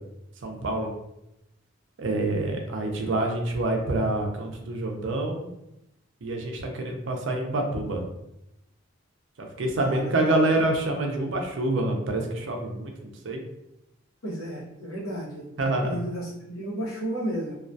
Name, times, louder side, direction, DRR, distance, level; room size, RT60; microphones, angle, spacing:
voice 1, 0.4-0.9 2.0-5.5 6.2-8.0 9.4-13.4 15.6-16.0, right 2 dB, 65° right, 2 dB, 0.5 m, -27 dB
voice 2, 9.8-10.4 14.2-17.6, right 1 dB, 90° left, -4 dB, 0.8 m, -33 dB
2.3 x 2.2 x 2.6 m, 0.86 s
head